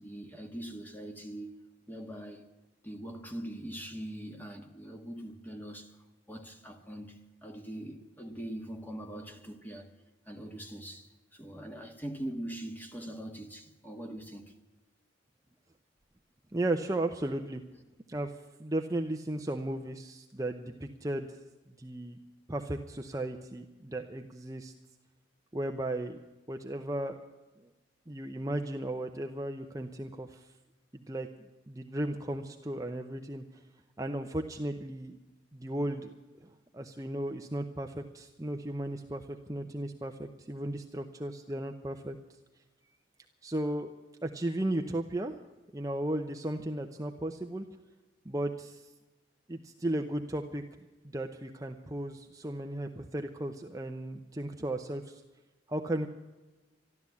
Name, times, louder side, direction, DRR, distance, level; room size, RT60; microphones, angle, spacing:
voice 1, 0.0-1.5 1.9-2.5 2.8-5.9 6.3-9.9 10.3-14.4, right 1 dB, 10° left, 1.5 m, -42 dB
voice 2, 16.5-17.6 18.1-18.3 18.6-21.3 21.8-22.2 22.5-24.7 25.5-26.2 26.5-27.2 28.1-30.5 30.9-31.3 31.7-33.6 34.0-35.2 35.5-42.2 43.4-43.9 44.2-45.3 45.7-47.6 48.2-48.9 49.5-50.6 51.0-55.2 55.7-56.1, right 1 dB, 20° right, 0.7 m, -35 dB
13.0 x 12.5 x 8.4 m
head